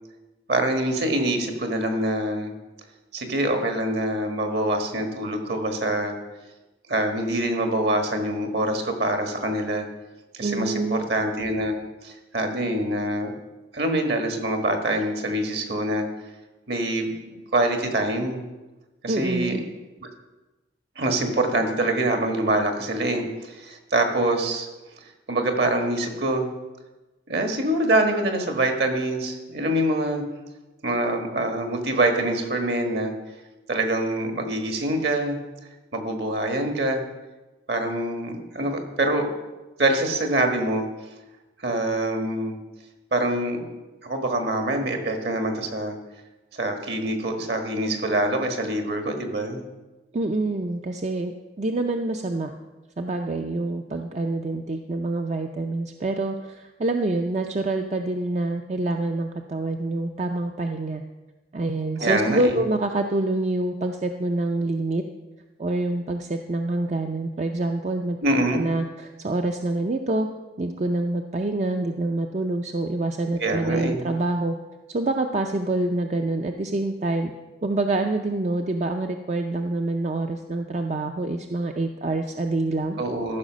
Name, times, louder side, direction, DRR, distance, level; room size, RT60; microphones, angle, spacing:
voice 1, 0.5-2.5 3.1-6.1 6.9-9.8 10.4-11.7 12.0-13.3 13.7-16.0 16.7-18.4 19.0-19.5 20.0-20.1 21.0-24.7 25.3-26.5 27.3-30.2 30.8-33.1 33.7-35.4 35.9-37.0 37.7-39.3 39.8-40.9 41.6-42.6 43.1-43.7 44.0-45.9 46.5-49.6 62.0-62.6 68.2-68.6 73.4-74.1 83.0-83.4, right 1 dB, 65° right, 5 dB, 1.6 m, -25 dB
voice 2, 10.4-11.1 19.1-19.6 50.1-52.5 53.0-61.0 61.5-65.0 65.6-68.2 68.5-70.3 70.6-74.6 74.9-77.3 77.6-83.0, right 2 dB, 40° right, 4 dB, 0.5 m, -26 dB
14.0 x 5.7 x 6.2 m, 1.1 s
head